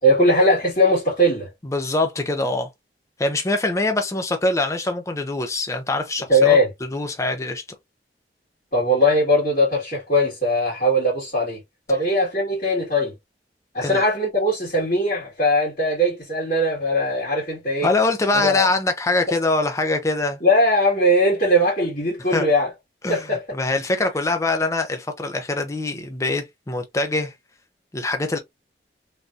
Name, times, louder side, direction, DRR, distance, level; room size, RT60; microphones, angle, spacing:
voice 1, 0.0-1.5 6.3-6.7 8.7-11.6 11.9-13.1 13.7-17.9 18.3-18.7 20.4-22.7 23.1-23.4, equal, 45° left, 1.9 m, -20 dB
voice 2, 1.6-2.7 3.2-6.6 6.9-7.6 13.8-14.0 17.8-20.4 22.3-22.5 23.0-27.3 27.9-28.4, left 2 dB, 20° left, 0.5 m, -23 dB
3.3 x 2.6 x 2.4 m
head